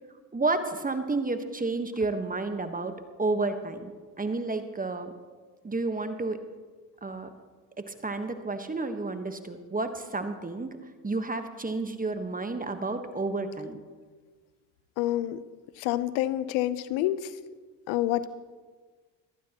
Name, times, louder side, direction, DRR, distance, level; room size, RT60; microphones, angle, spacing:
voice 1, 0.3-3.9 4.2-5.1 5.6-6.4 7.0-7.3 7.8-10.8 11.0-13.8, right 3 dB, 20° right, 8 dB, 1.2 m, -31 dB
voice 2, 15.0-15.4 15.8-17.3 17.9-18.3, left 14 dB, 75° left, 15 dB, 0.8 m, -27 dB
19.5 x 12.5 x 3.0 m, 1.4 s
hypercardioid pair, 65°, 47 cm